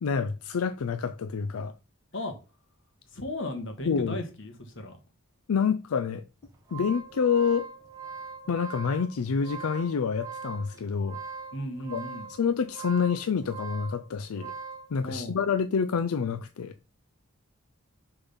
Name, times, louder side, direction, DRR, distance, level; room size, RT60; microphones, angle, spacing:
voice 1, 0.0-1.7 3.9-4.2 5.5-6.2 6.7-7.7 8.5-11.2 11.9-12.0 12.4-14.5 14.9-16.7, left 6 dB, 85° left, 0.4 m, -27 dB
voice 2, 3.1-5.0 11.5-12.3 15.0-15.4, left 1 dB, 60° left, 1.5 m, -35 dB
sound 1, 6.4-14.9, right 5 dB, 15° right, 1.5 m, -41 dB
6.8 x 3.8 x 5.6 m
head